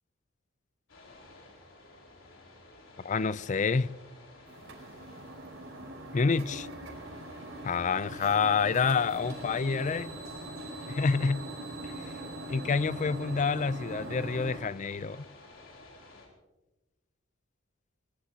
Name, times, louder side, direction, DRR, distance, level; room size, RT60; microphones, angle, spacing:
sound 1, 0.9-16.3, left 2 dB, 70° left, 4.4 m, -54 dB
voice 1, 3.0-3.9 6.1-6.7 7.6-10.2 10.9-11.5 11.8-12.1 12.5-15.2, left 5 dB, 35° left, 0.4 m, -28 dB
sound 2, 4.5-14.7, right 1 dB, 70° right, 4.9 m, -42 dB
sound 3, 8.5-14.4, right 5 dB, 30° right, 5.4 m, -52 dB
22.0 x 21.0 x 2.8 m
head